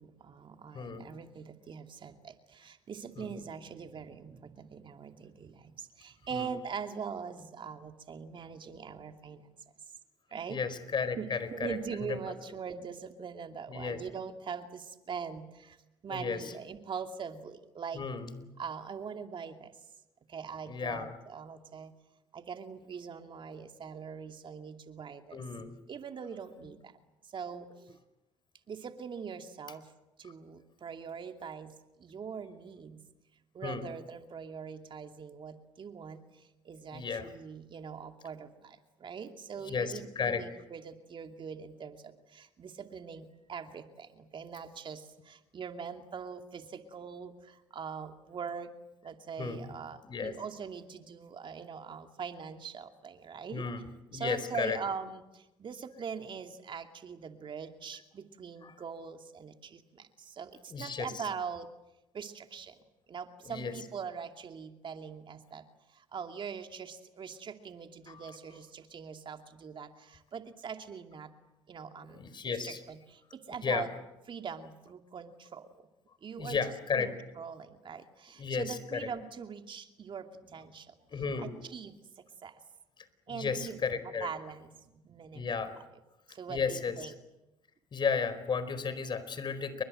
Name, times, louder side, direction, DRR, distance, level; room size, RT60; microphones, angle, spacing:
voice 1, 0.0-9.5 10.3-10.6 11.2-15.8 16.0-18.1 18.6-19.8 20.3-21.9 22.3-25.5 25.9-26.9 27.2-28.0 28.7-29.9 30.2-33.0 33.5-48.7 49.0-53.6 54.1-61.7 62.1-71.3 71.7-73.9 74.3-75.8 76.2-80.9 81.4-82.6 83.3-85.7 86.3-87.1, right 6 dB, 45° right, 6 dB, 2.6 m, -42 dB
voice 2, 0.7-1.1 3.2-3.3 6.3-6.5 10.5-11.8 12.1-12.2 13.7-14.0 16.1-16.5 17.9-18.3 20.7-21.1 25.3-25.7 33.6-33.9 36.9-37.3 39.7-40.4 49.4-49.8 50.0-50.3 53.5-53.8 54.1-54.8 58.6-58.7 60.7-61.1 63.4-63.7 68.1-68.2 72.1-72.8 73.6-73.9 76.4-77.1 78.4-79.1 81.1-81.5 83.3-84.3 85.3-85.7 86.5-87.1 87.9-89.8, left 5 dB, 40° left, 13 dB, 4.7 m, -34 dB
30.0 x 23.0 x 7.8 m, 0.96 s
supercardioid pair, 70°, 12 cm